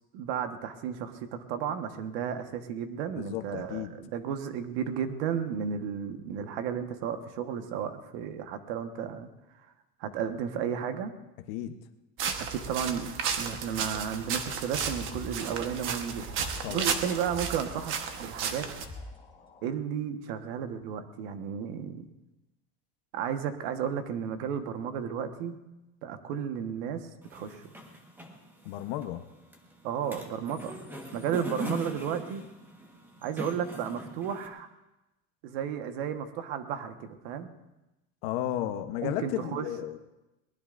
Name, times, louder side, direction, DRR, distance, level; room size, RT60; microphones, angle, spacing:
voice 1, 0.1-9.3 10.0-11.1 12.5-13.1 13.4-17.9 18.2-18.7 19.6-22.1 23.1-25.6 26.0-27.7 29.8-30.8 31.1-32.4 33.2-34.7 35.4-37.5 39.0-39.7, right 8 dB, 75° right, 7 dB, 1.4 m, -33 dB
voice 2, 3.1-3.9 11.5-11.8 16.6-16.9 28.7-29.2 38.2-40.0, left 12 dB, 70° left, 7 dB, 1.0 m, -33 dB
sound 1, 12.2-18.8, right 6 dB, 40° right, 1.2 m, -33 dB
sound 2, 14.8-19.7, left 2 dB, 15° left, 3.1 m, -45 dB
sound 3, 27.2-34.5, left 1 dB, 5° right, 1.4 m, -42 dB
22.5 x 19.5 x 2.6 m, 0.99 s
cardioid pair, 165°, 30 cm